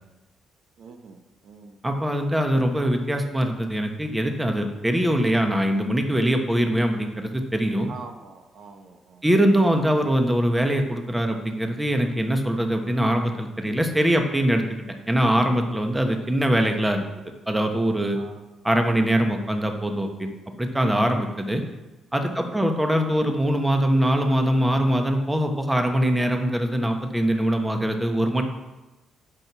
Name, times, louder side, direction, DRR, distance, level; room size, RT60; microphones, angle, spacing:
voice 1, 0.8-1.8 7.9-9.2 18.1-18.4 22.3-22.7, right 4 dB, 65° right, 5 dB, 1.1 m, -44 dB
voice 2, 1.8-7.9 9.2-17.1 17.5-18.2 18.6-20.3 20.6-21.6 22.1-28.4, equal, 10° right, 4 dB, 1.2 m, -22 dB
8.8 x 6.1 x 6.1 m, 1.1 s
cardioid pair, 90°, 0 cm